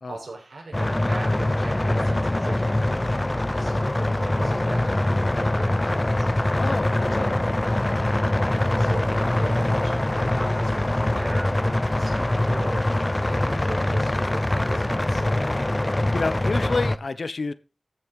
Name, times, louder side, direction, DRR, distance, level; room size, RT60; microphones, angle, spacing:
voice 1, 0.1-6.3 7.1-7.3 8.4-15.4, right 3 dB, 80° right, 6.3 m, -39 dB
sound 1, 0.7-17.0, left 1 dB, 25° left, 0.7 m, -23 dB
voice 2, 6.6-7.4 15.8-17.5, left 3 dB, 70° left, 0.9 m, -29 dB
14.5 x 7.8 x 5.3 m
wide cardioid pair, 80°, 0 cm